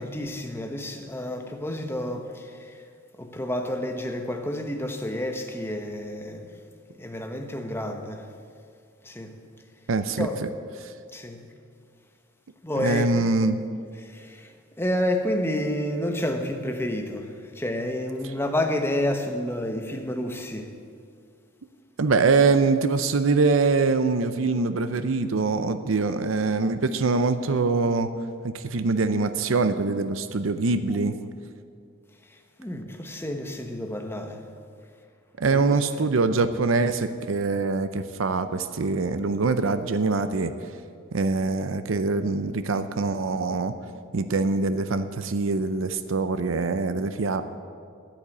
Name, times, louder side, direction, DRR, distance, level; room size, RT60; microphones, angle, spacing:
voice 1, 0.0-2.9 3.1-6.5 6.9-8.3 9.0-9.4 10.2-10.4 11.1-11.5 12.6-13.3 14.0-20.7 32.2-34.4 35.5-36.1, left 1 dB, 10° left, 1.0 m, -30 dB
voice 2, 9.9-10.3 10.8-10.9 12.8-13.6 22.0-28.1 28.4-31.2 35.4-40.5 41.1-43.7 44.1-47.4, right 3 dB, 75° right, 0.6 m, -24 dB
10.0 x 8.8 x 8.3 m
head